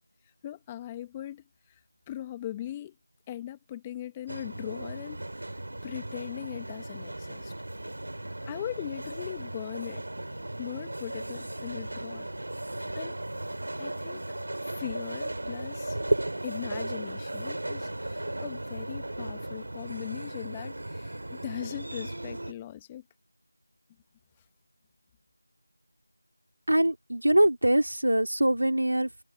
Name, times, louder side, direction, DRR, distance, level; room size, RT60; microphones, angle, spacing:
voice 1, 0.4-1.8 2.1-2.9 3.3-5.2 5.8-7.5 8.5-10.0 10.6-12.2 12.9-13.1 13.8-14.2 14.6-16.0 16.4-23.0, left 12 dB, 5° left, 1.4 m, -39 dB
sound 1, 4.3-22.5, right 1 dB, 50° right, 3.0 m, -36 dB
voice 2, 26.7-29.2, right 1 dB, 70° right, 3.7 m, -23 dB
figure-of-eight pair, 175°, 0 cm